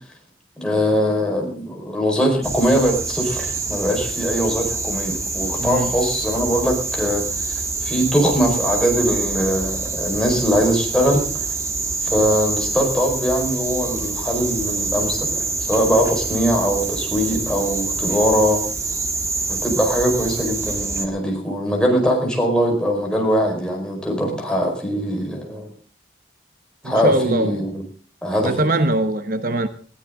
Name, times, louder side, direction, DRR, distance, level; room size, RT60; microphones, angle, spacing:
voice 1, 0.6-11.4 12.0-18.6 19.5-25.7 26.8-27.8 28.2-28.5, equal, 5° left, 0 dB, 4.8 m, -21 dB
sound 1, 2.4-21.1, right 3 dB, 15° right, 1.5 m, -26 dB
voice 2, 5.6-5.9 24.2-24.4 26.8-27.6 28.4-29.7, right 1 dB, 50° right, 9 dB, 0.9 m, -22 dB
20.0 x 16.0 x 3.8 m, 0.43 s
head